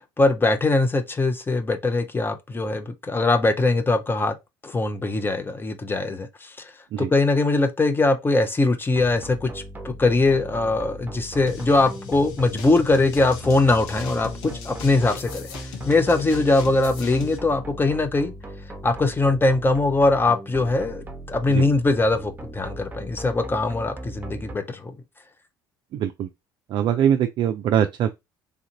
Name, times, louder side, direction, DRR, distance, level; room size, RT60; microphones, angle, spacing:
voice 1, 0.2-4.3 4.6-6.7 7.0-15.5 15.9-18.3 18.8-25.0, left 2 dB, 20° left, 0.7 m, -21 dB
sound 1, 8.9-24.6, right 1 dB, 15° right, 0.9 m, -38 dB
sound 2, 11.5-17.4, left 6 dB, 60° left, 0.7 m, -39 dB
voice 2, 25.9-26.3 26.7-28.1, right 9 dB, 45° right, 0.4 m, -22 dB
3.4 x 2.5 x 2.8 m
figure-of-eight pair, 55°, 11 cm